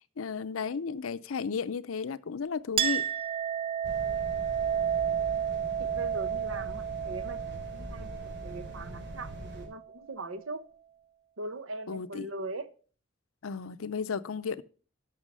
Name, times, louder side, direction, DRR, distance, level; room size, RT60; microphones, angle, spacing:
voice 1, 0.0-3.1 11.9-12.3 13.4-14.6, left 5 dB, 90° left, 0.6 m, -34 dB
Chink clink, 2.8-9.8, right 9 dB, 30° right, 0.4 m, -32 dB
sound 1, 3.8-9.7, equal, 60° right, 3.2 m, -43 dB
voice 2, 5.8-10.6 11.4-12.7, right 2 dB, 75° right, 0.9 m, -40 dB
12.5 x 5.8 x 5.3 m
head